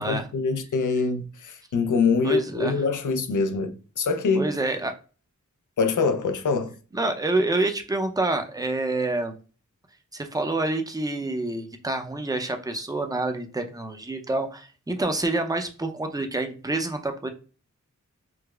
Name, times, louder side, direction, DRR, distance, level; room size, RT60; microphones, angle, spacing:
voice 1, 0.0-4.5 5.8-6.7, left 4 dB, 75° left, 0.5 m, -24 dB
voice 2, 2.2-2.8 4.3-4.9 6.9-9.4 10.1-17.3, right 2 dB, 10° right, 0.5 m, -27 dB
4.8 x 2.0 x 2.3 m
wide cardioid pair, 55°, 31 cm